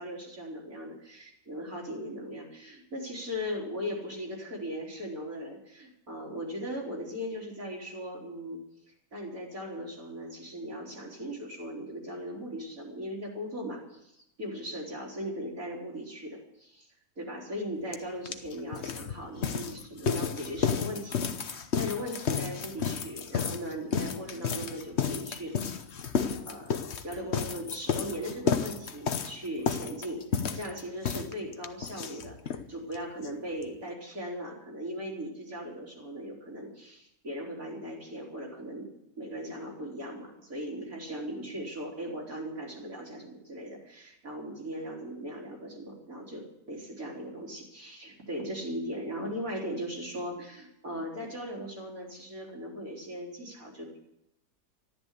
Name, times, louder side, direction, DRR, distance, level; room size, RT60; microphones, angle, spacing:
voice 1, 0.0-8.6 9.1-16.4 17.2-25.9 26.4-26.7 27.0-30.2 30.5-38.9 39.2-54.0, equal, 60° right, -3 dB, 4.4 m, -38 dB
sound 1, 17.9-18.0 18.3-32.6 32.9-33.0 33.2-33.3 33.6-33.7, left 6 dB, 50° left, 1.2 m, -32 dB
14.0 x 12.5 x 8.2 m, 0.82 s
omnidirectional pair, 1.7 m